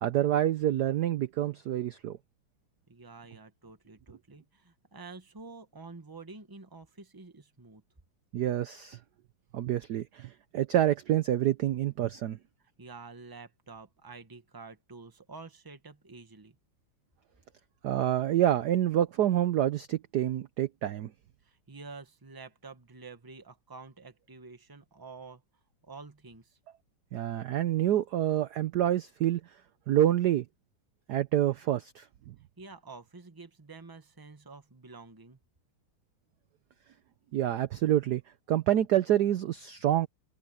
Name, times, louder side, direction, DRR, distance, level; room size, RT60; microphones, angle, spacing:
voice 1, 0.0-2.2 8.3-9.0 9.5-12.4 17.8-21.1 27.1-29.4 29.9-30.5 31.1-32.3 37.3-38.2 38.5-40.1, right 12 dB, 65° right, 1.0 m, -27 dB
voice 2, 2.9-7.8 12.8-16.6 21.4-25.4 25.8-26.6 32.6-35.4, right 4 dB, 10° right, 1.2 m, -48 dB
omnidirectional pair, 2.4 m